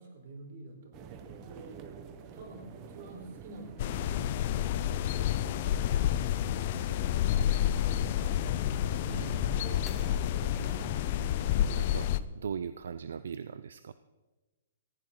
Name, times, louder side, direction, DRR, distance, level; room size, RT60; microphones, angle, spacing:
voice 1, 0.0-1.9 2.3-4.4 4.8-6.1 6.5-7.6 7.9-8.2 9.0-9.6 10.1-10.8, right 2 dB, 50° right, 2 dB, 4.3 m, -50 dB
sound 1, 0.9-12.3, right 5 dB, 25° right, 1.1 m, -48 dB
sound 2, 3.8-12.2, left 11 dB, 40° left, 0.5 m, -29 dB
sound 3, 5.5-12.2, left 2 dB, 5° left, 0.9 m, -51 dB
voice 2, 9.0-9.6 11.7-12.1 12.3-13.9, right 7 dB, 75° right, 13 dB, 0.6 m, -39 dB
19.5 x 15.0 x 3.9 m, 1.2 s
hypercardioid pair, 160°, 0 cm